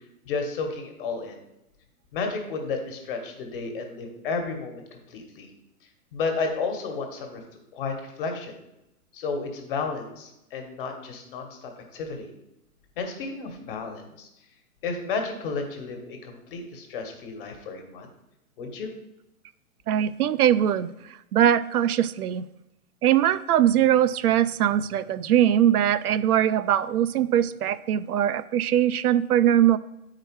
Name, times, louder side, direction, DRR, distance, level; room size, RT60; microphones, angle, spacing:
voice 1, 0.3-1.4 2.1-5.5 6.1-7.4 7.7-8.5 9.1-12.3 13.0-14.3 14.8-18.1 18.6-18.9, left 4 dB, 35° left, 4 dB, 1.4 m, -32 dB
voice 2, 19.9-20.9 21.3-22.4 23.0-29.8, right 10 dB, 80° right, 15 dB, 0.5 m, -21 dB
9.0 x 4.8 x 4.6 m, 0.88 s
hypercardioid pair, 155°, 45 cm